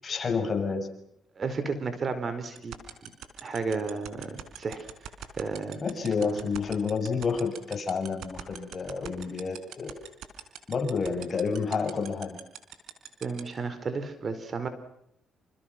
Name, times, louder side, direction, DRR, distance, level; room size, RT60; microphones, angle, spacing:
voice 1, 0.0-0.9 5.8-9.9 10.7-12.4, left 5 dB, 40° left, 4 dB, 6.7 m, -29 dB
voice 2, 1.4-2.7 3.4-4.8 5.4-5.8 6.2-6.5 13.2-14.7, right 4 dB, 45° right, 10 dB, 4.6 m, -32 dB
sound 1, 2.6-13.4, right 11 dB, 80° right, 5.0 m, -40 dB
28.5 x 28.0 x 6.0 m, 0.75 s
cardioid pair, 90°, 0 cm